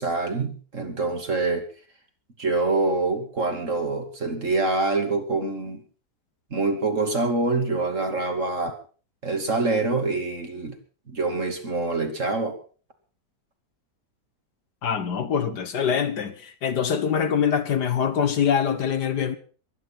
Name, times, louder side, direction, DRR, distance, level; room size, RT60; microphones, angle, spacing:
voice 1, 0.0-1.6 2.4-5.8 6.5-8.8 9.2-10.8 11.1-12.6, right 3 dB, 45° right, 3.0 m, -25 dB
voice 2, 14.8-19.4, left 7 dB, 70° left, 1.9 m, -24 dB
22.5 x 9.7 x 5.9 m
omnidirectional pair, 1.9 m